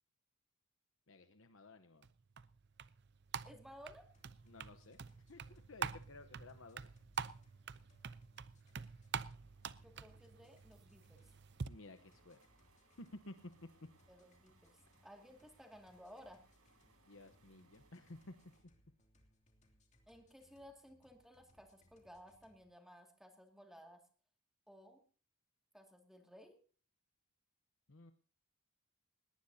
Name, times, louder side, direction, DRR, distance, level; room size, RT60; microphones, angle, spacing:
voice 1, 1.1-2.1 4.5-5.0 5.3-6.9 11.6-12.4 13.0-13.3 17.1-18.3 27.9-28.1, left 2 dB, 60° left, 8 dB, 1.0 m, -55 dB
sound 1, 2.0-11.7, right 6 dB, 50° right, 0.6 m, -47 dB
voice 2, 3.4-4.1 9.8-11.3 14.1-16.4 20.1-24.0 24.7-25.0 25.7-26.6, equal, ahead, 3 dB, 2.3 m, -58 dB
sound 2, 4.1-22.7, equal, 30° left, 2.6 m, -72 dB
sound 3, 9.2-18.6, right 3 dB, 85° right, 6.6 m, -72 dB
19.5 x 18.5 x 2.8 m, 0.40 s
head